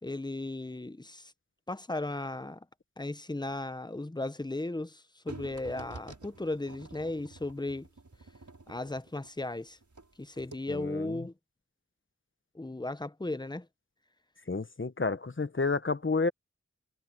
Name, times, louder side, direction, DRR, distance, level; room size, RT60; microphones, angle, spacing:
voice 1, 0.0-1.3 1.7-2.7 3.0-7.9 8.7-9.8 10.2-11.3 12.5-13.7, left 2 dB, 15° left, 0.8 m, -36 dB
sound 1, 5.3-10.1 10.4-10.6, right 3 dB, 80° right, 6.2 m, -49 dB
voice 2, 10.7-11.2 14.5-16.3, left 3 dB, 45° left, 1.1 m, -30 dB
wide cardioid pair, 45°, 29 cm